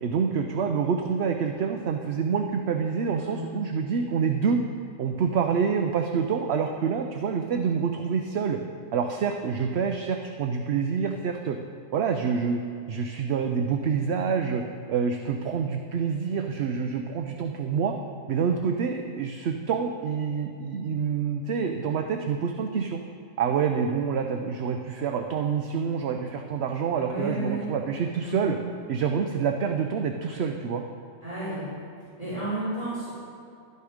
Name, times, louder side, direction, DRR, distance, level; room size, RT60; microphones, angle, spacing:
voice 1, 0.0-4.6 5.0-8.6 8.9-11.6 11.9-12.6 12.9-14.6 14.9-18.0 18.3-23.0 23.4-28.6 28.9-30.8, right 6 dB, 60° right, 4 dB, 0.8 m, -27 dB
voice 2, 3.0-3.5 27.0-27.7 28.2-28.5 31.2-31.6 32.2-33.1, right 2 dB, 25° right, -11 dB, 3.3 m, -32 dB
12.0 x 9.4 x 5.0 m, 2.5 s
omnidirectional pair, 1.4 m